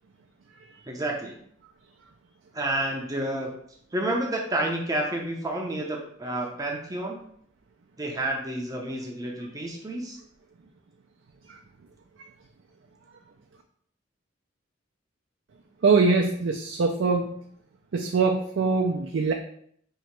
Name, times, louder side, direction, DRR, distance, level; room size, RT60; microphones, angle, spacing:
voice 1, 0.9-1.4 2.5-3.5 3.9-7.2 8.0-10.2, right 1 dB, 20° right, 0 dB, 0.5 m, -30 dB
voice 2, 15.8-17.3 17.9-19.3, right 4 dB, 70° right, 1 dB, 0.4 m, -23 dB
3.1 x 2.8 x 4.5 m, 0.65 s
head